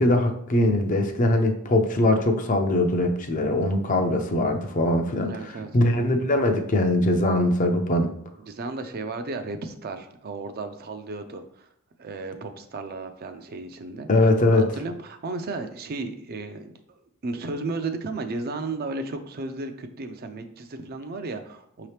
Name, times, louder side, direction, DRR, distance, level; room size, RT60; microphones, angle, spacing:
voice 1, 0.0-8.1 14.1-14.7, left 1 dB, 35° left, 5 dB, 0.5 m, -22 dB
voice 2, 5.2-5.7 8.5-11.7 12.0-16.8 17.2-21.9, right 3 dB, 45° right, 7 dB, 0.4 m, -34 dB
5.5 x 2.9 x 3.3 m, 0.71 s
head